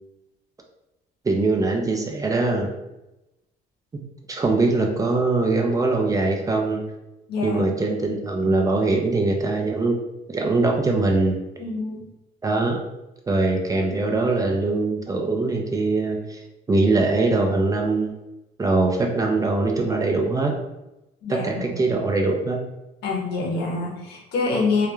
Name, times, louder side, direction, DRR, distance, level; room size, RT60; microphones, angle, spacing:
voice 1, 1.2-2.7 4.3-6.8 7.4-10.0 10.3-11.4 12.4-12.8 13.3-16.4 16.7-18.2 18.6-20.5 21.3-22.6, right 3 dB, 20° right, 2 dB, 0.4 m, -22 dB
voice 2, 7.3-7.7 11.6-12.0 21.2-21.7 23.0-24.9, left 3 dB, 75° left, 0 dB, 0.8 m, -26 dB
2.3 x 2.1 x 3.0 m, 0.93 s
cardioid pair, 110°, 17 cm